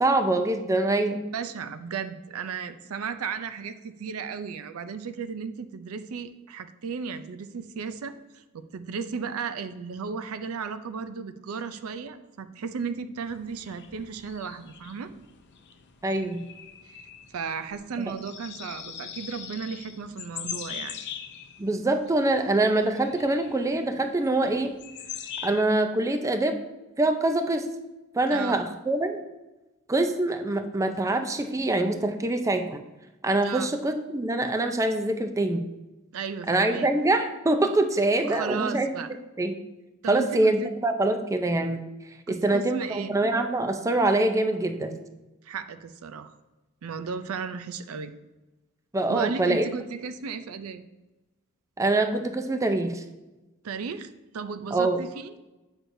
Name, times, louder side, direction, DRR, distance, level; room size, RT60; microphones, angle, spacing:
voice 1, 0.0-1.2 16.0-16.4 18.0-18.1 21.6-24.7 25.4-26.6 27.0-27.7 28.1-29.2 29.9-32.8 33.2-35.6 36.5-38.9 39.4-39.6 40.1-41.8 42.3-45.0 48.9-49.6 51.8-53.0 54.7-55.0, right 2 dB, 15° right, 6 dB, 0.4 m, -24 dB
voice 2, 1.3-15.1 16.9-17.0 17.3-21.0 28.3-28.6 33.4-33.7 36.1-36.9 38.2-39.1 40.0-40.7 42.3-43.1 45.4-46.3 46.8-48.1 49.1-50.8 53.6-55.3, right 5 dB, 80° right, 11 dB, 0.4 m, -35 dB
sound 1, 13.2-25.6, left 8 dB, 55° left, 0.6 m, -42 dB
8.0 x 6.1 x 2.6 m, 1.0 s
head